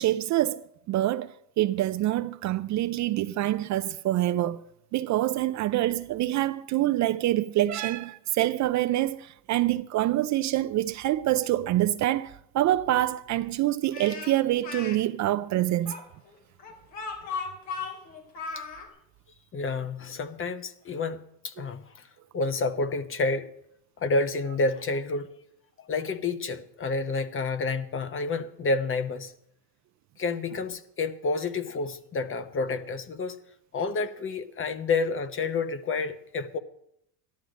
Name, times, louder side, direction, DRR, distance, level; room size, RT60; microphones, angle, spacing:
voice 1, 0.0-4.6 4.9-15.9 21.6-21.7 34.0-34.1, right 14 dB, 45° right, 0.5 m, -26 dB
Speech, 13.9-15.0 15.8-18.9, left 5 dB, 75° left, 3.6 m, -36 dB
voice 2, 19.5-22.1 22.3-23.5 24.0-25.3 25.8-29.3 30.2-33.4 33.7-36.6, left 3 dB, 30° left, 0.9 m, -29 dB
13.0 x 11.5 x 5.1 m
supercardioid pair, 110°, 44 cm